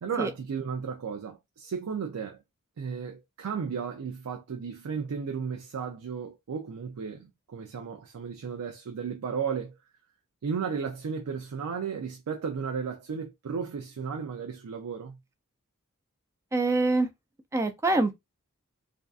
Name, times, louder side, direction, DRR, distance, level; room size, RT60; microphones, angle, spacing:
voice 1, 0.0-2.4 2.8-9.8 10.4-15.2, right 6 dB, 85° right, 0.4 m, -34 dB
voice 2, 16.5-17.1 17.5-18.1, right 2 dB, 15° right, 0.3 m, -24 dB
2.5 x 2.3 x 2.3 m
head